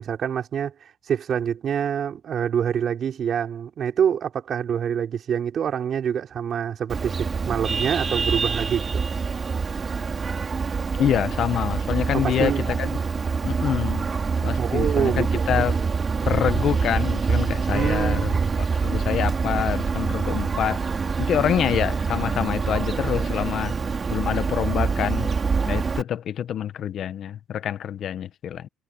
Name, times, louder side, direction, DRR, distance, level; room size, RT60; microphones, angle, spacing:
voice 1, 0.0-9.1 12.2-12.6 14.6-15.6 17.7-18.5, right 8 dB, 50° right, 4.4 m, -26 dB
Vehicle horn car horn honking, 6.9-26.0, right 5 dB, 35° right, 4.0 m, -25 dB
voice 2, 11.0-12.9 13.4-14.0 14.4-15.8 16.3-20.8 21.2-23.7 24.1-25.3 25.7-28.7, left 10 dB, 60° left, 1.3 m, -26 dB
cardioid pair, 100°, 0 cm